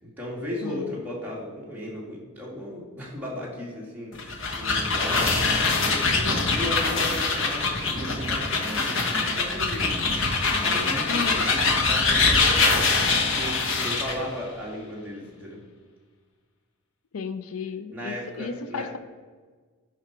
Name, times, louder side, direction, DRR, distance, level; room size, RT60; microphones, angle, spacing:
voice 1, 0.0-15.6 17.9-18.9, left 1 dB, 10° right, -5 dB, 2.0 m, -36 dB
voice 2, 0.6-0.9 11.1-11.4 17.1-19.0, left 5 dB, 80° left, 11 dB, 0.5 m, -33 dB
sound 1, 4.1-14.2, left 3 dB, 65° left, 1.1 m, -23 dB
10.5 x 4.8 x 4.5 m, 1.5 s
head